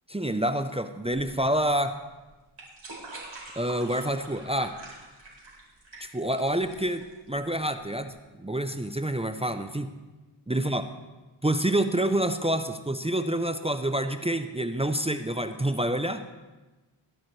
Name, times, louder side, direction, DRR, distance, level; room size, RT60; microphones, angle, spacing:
voice 1, 0.1-2.0 3.6-4.7 6.0-9.9 10.5-10.8 11.4-16.2, right 1 dB, 10° right, 7 dB, 0.7 m, -27 dB
sound 1, 1.0-8.1, right 2 dB, 65° right, 4.8 m, -46 dB
22.0 x 8.7 x 3.3 m, 1.2 s
cardioid pair, 50°, 49 cm